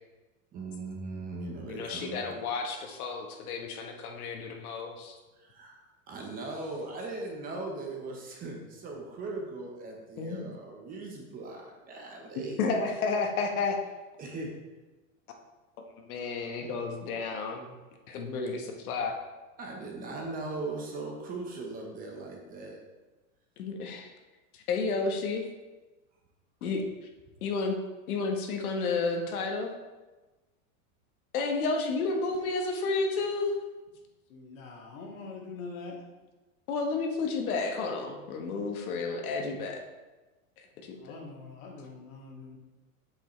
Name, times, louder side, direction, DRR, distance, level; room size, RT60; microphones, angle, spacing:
voice 1, 0.5-2.2 5.4-12.6 14.2-14.6 19.6-22.8, right 3 dB, 20° right, 1 dB, 0.9 m, -39 dB
voice 2, 1.6-5.2 10.2-10.4 12.6-13.8 16.0-17.7 18.1-19.2 23.6-24.1 24.5-25.5 26.6-26.8 27.4-27.8 28.1-29.7 31.3-33.5 36.7-39.8 40.8-41.2, left 4 dB, 80° left, 3 dB, 1.3 m, -31 dB
voice 3, 34.3-36.0 40.8-42.6, left 4 dB, 60° left, -1 dB, 2.0 m, -44 dB
7.8 x 7.1 x 3.1 m, 1.2 s
supercardioid pair, 160°, 43 cm